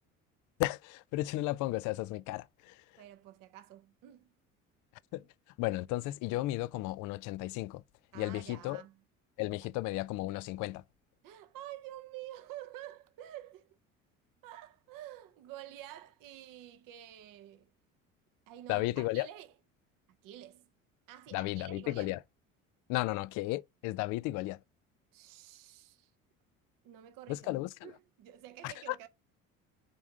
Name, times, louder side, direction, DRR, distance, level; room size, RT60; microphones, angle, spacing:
voice 1, 0.6-2.8 5.1-5.2 5.6-7.8 8.1-8.8 9.4-10.8 18.7-19.3 21.3-22.2 22.9-24.6 27.3-27.9 28.6-29.0, left 18 dB, 50° left, 0.5 m, -34 dB
voice 2, 3.0-4.3 8.1-9.0 11.2-13.8 14.4-17.7 18.5-19.5 20.2-20.7 21.1-22.1 25.1-26.1 26.8-27.6 27.8-29.1, right 13 dB, 55° right, 0.9 m, -49 dB
7.6 x 3.5 x 3.8 m
hypercardioid pair, 60°, 40 cm